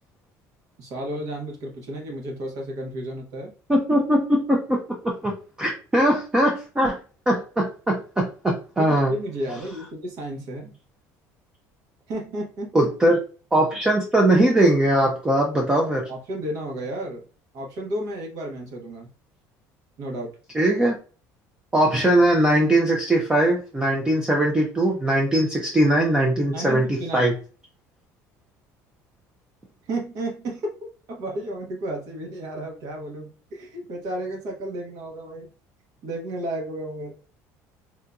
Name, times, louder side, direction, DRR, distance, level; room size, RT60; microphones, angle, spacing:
voice 1, 0.8-3.5 8.8-10.7 12.1-12.9 16.1-17.2 17.5-19.1 20.0-20.4 26.5-27.3 29.9-30.8 31.1-35.5 36.0-37.1, right 1 dB, 60° right, 0 dB, 1.1 m, -32 dB
voice 2, 3.7-4.8 5.0-5.3 5.6-7.0 7.3-9.1 12.7-13.2 13.5-16.0 20.5-20.9 21.7-26.8 27.1-27.3, right 1 dB, 10° right, 0 dB, 0.5 m, -20 dB
3.6 x 2.6 x 2.3 m, 0.36 s
cardioid pair, 140°, 7 cm